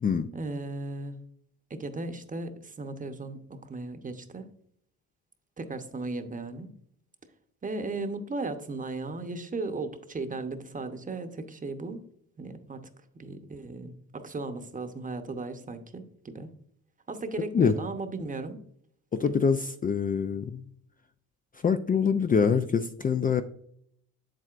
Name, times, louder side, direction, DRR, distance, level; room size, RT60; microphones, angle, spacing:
voice 1, 0.3-1.2 1.7-4.5 5.6-6.7 7.6-12.0 12.4-12.8 13.1-16.5 17.1-18.6, right 3 dB, 25° right, 8 dB, 0.9 m, -36 dB
voice 2, 19.1-20.6 21.6-23.4, left 6 dB, 30° left, 8 dB, 0.4 m, -25 dB
7.8 x 7.6 x 2.4 m, 0.68 s
cardioid pair, 90°, 30 cm